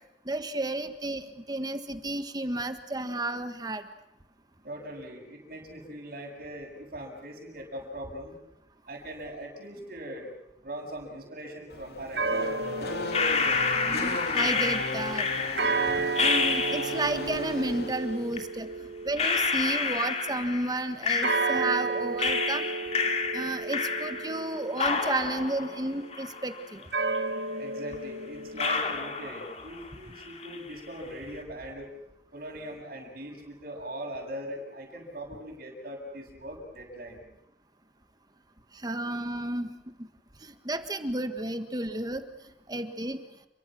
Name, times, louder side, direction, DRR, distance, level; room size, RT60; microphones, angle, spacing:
voice 1, 0.2-3.8 13.8-15.3 15.6-15.7 16.2-18.7 19.0-22.7 23.3-26.9 38.7-39.9 40.4-42.2 42.7-43.2, right 1 dB, 25° right, 8 dB, 1.6 m, -32 dB
voice 2, 4.6-8.4 8.9-10.3 10.6-12.7 27.6-31.9 32.3-37.2, right 1 dB, 50° right, -6 dB, 7.3 m, -41 dB
Race car auto racing / Accelerating revving vroom, 11.7-18.4, left 2 dB, 65° left, 3.3 m, -36 dB
sound 1, 12.2-14.6 15.6-20.5 21.2-26.1 26.9-29.4, right 3 dB, 70° right, 1.7 m, -33 dB
sound 2, 13.1-17.2 18.3-18.4 19.2-21.9 22.2-24.5 24.8-26.8 27.1-27.2 27.9-28.0 28.6-29.9 30.2-30.7, left 4 dB, 40° left, 2.9 m, -29 dB
29.5 x 24.0 x 6.3 m, 0.85 s
head